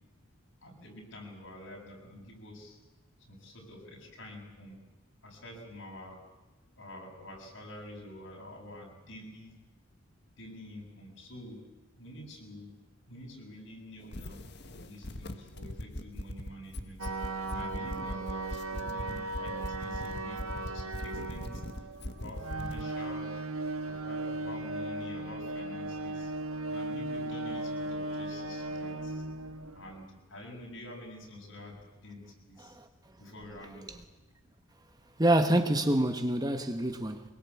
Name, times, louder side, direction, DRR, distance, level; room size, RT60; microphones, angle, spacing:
voice 1, 0.6-2.8 3.3-4.8 5.2-6.2 6.7-9.5 10.4-11.7 12.0-12.8 13.1-14.4 14.8-17.1 17.5-23.3 23.9-26.3 26.7-29.2 29.7-32.8 33.2-33.9, left 1 dB, 65° left, 7.9 m, -47 dB
sound 1, 14.0-22.8, left 1 dB, 50° left, 1.6 m, -39 dB
sound 2, 17.0-30.1, right 2 dB, 90° right, 1.6 m, -37 dB
voice 2, 35.2-37.2, right 1 dB, 20° right, 1.3 m, -26 dB
25.0 x 22.5 x 8.5 m
head